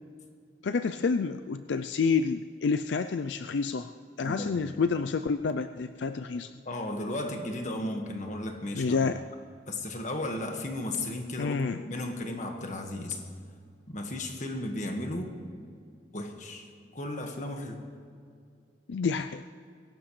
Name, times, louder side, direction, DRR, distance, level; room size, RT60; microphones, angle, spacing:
voice 1, 0.6-3.9 4.2-6.5 8.7-9.2 11.4-11.8 18.9-19.4, left 5 dB, 80° left, 9 dB, 0.4 m, -28 dB
voice 2, 4.2-4.6 6.6-9.1 9.7-11.6 11.8-13.2 13.9-15.3 16.1-17.9, left 1 dB, 45° left, 3 dB, 1.6 m, -35 dB
22.5 x 17.5 x 3.2 m, 2.3 s
head